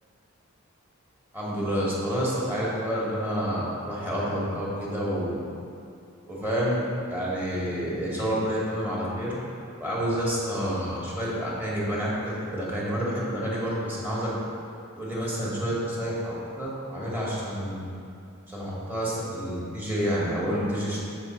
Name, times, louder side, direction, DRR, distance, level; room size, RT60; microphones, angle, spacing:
voice 1, 1.3-5.4 6.3-6.8 7.1-9.4 9.8-14.3 14.9-17.8 18.5-21.0, equal, 10° right, -6 dB, 1.4 m, -29 dB
6.7 x 4.5 x 4.3 m, 2.5 s
head